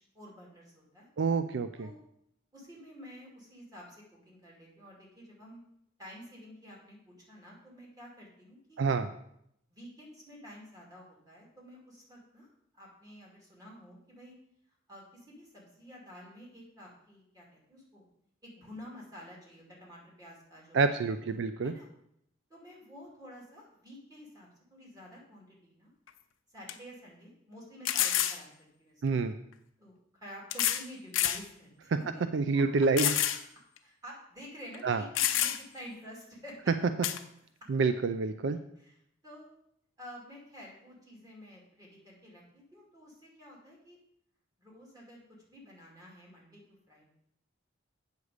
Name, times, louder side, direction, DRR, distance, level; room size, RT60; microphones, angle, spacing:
voice 1, 0.1-1.1 1.8-2.0 2.5-5.6 6.0-8.8 9.7-12.5 12.7-14.3 14.9-18.0 18.4-20.8 21.1-21.9 22.5-25.9 26.5-29.2 29.8-32.2 32.5-33.1 33.8-36.6 38.8-39.5 40.0-44.0 44.6-47.1, equal, 20° right, -3 dB, 2.5 m, -50 dB
voice 2, 1.2-1.9 8.8-9.1 20.7-21.7 29.0-29.3 32.3-33.1 34.8-35.0 37.7-38.6, right 4 dB, 65° right, 10 dB, 0.4 m, -27 dB
sound 1, 26.1-26.2 26.7-26.8 27.8-28.4 29.5-29.6 30.5-30.9 31.1-31.4 31.9-32.0 33.0-33.4 33.8-33.9 34.7-34.8 35.1-35.8 37.0-37.2, left 11 dB, 80° left, 0.6 m, -28 dB
8.2 x 6.5 x 4.9 m, 0.75 s
head